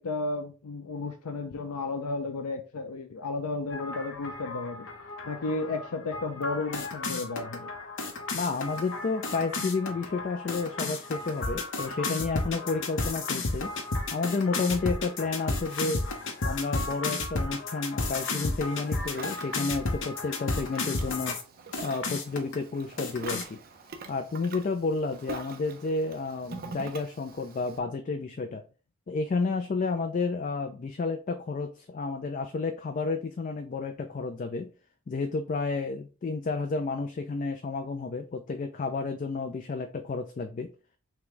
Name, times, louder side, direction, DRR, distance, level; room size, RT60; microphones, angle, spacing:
voice 1, 0.0-4.9 5.2-7.7, left 3 dB, 90° left, 5 dB, 0.5 m, -33 dB
sound 1, 3.7-21.4 21.7-22.5 23.0-23.4, left 3 dB, 55° left, 0.8 m, -33 dB
voice 2, 8.3-13.7 14.1-16.0 16.4-21.4 21.8-23.6 24.1-28.6 29.1-34.7 35.1-40.7, left 4 dB, 35° left, 7 dB, 0.3 m, -31 dB
Ocean, 18.8-27.8, right 4 dB, 40° right, 0.6 m, -45 dB
5.8 x 2.2 x 3.8 m, 0.35 s
head